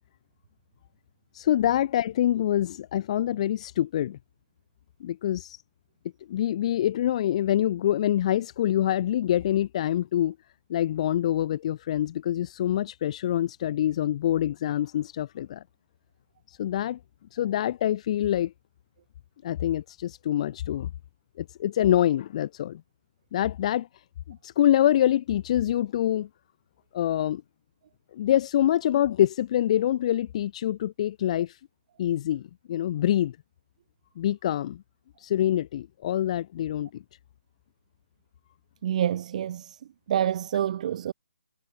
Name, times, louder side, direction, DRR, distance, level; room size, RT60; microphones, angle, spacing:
voice 1, 1.3-4.2 5.0-5.6 6.3-10.4 10.7-15.6 16.5-17.0 17.3-18.5 19.4-20.9 21.4-22.8 23.3-23.9 24.3-26.3 26.9-27.4 28.1-31.6 32.0-33.4 34.2-34.8 35.2-37.0, left 11 dB, 30° left, 5.6 m, -25 dB
voice 2, 38.8-39.8 40.1-41.1, right 10 dB, 35° right, 2.6 m, -27 dB
hypercardioid pair, 165°, 6 cm